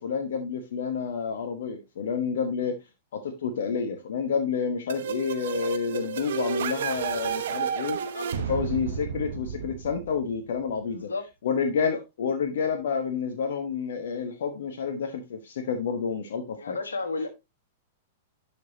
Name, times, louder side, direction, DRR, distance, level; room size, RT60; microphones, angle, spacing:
voice 1, 0.0-2.8 3.1-8.0 8.5-11.1 11.4-16.8, left 6 dB, 70° left, 7 dB, 1.2 m, -29 dB
sound 1, 4.9-10.6, right 7 dB, 70° right, 1.0 m, -32 dB
voice 2, 5.6-6.1 7.9-8.3 10.8-11.3 16.5-17.3, left 3 dB, 85° left, 8 dB, 1.5 m, -34 dB
10.5 x 5.4 x 2.9 m, 0.22 s
hypercardioid pair, 105°, 0 cm